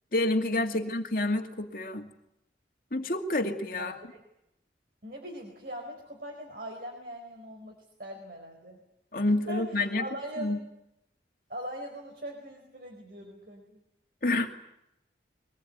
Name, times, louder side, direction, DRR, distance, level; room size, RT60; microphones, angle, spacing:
voice 1, 0.1-2.1 2.9-3.9 9.1-10.0 10.4-10.6 14.2-14.5, left 2 dB, 50° left, 4 dB, 2.4 m, -28 dB
voice 2, 3.8-4.2 5.0-8.8 9.2-10.5 11.5-13.8, right 1 dB, 55° right, 2 dB, 4.7 m, -41 dB
23.5 x 20.0 x 9.4 m, 0.84 s
head